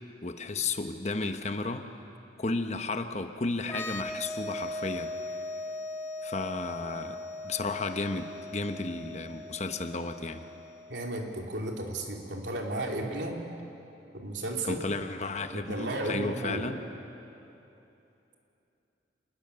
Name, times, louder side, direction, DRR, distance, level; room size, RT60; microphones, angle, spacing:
voice 1, 0.2-1.9 2.4-5.1 6.2-10.4 14.6-16.8, left 3 dB, 40° left, 8 dB, 1.0 m, -33 dB
sound 1, 3.6-11.1, left 2 dB, 15° left, 1.2 m, -39 dB
voice 2, 10.9-13.4 14.1-14.8 15.5-16.7, right 1 dB, 80° right, 1 dB, 3.1 m, -34 dB
27.5 x 20.5 x 7.0 m, 2.9 s
head